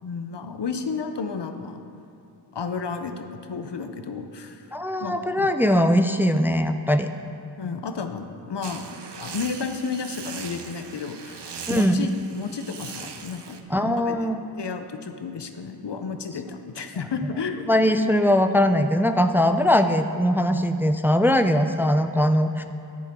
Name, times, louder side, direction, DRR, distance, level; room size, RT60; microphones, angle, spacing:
voice 1, 0.0-1.8 2.5-4.7 5.0-5.5 7.6-14.2 14.6-17.7 19.5-19.6, left 5 dB, 85° left, 7 dB, 0.7 m, -32 dB
voice 2, 4.7-7.1 11.7-12.1 13.7-14.4 17.7-22.6, equal, 5° right, 8 dB, 0.4 m, -21 dB
sound 1, 8.6-13.6, right 6 dB, 80° right, 0.6 m, -39 dB
10.0 x 9.7 x 3.6 m, 2.7 s
wide cardioid pair, 50°, 41 cm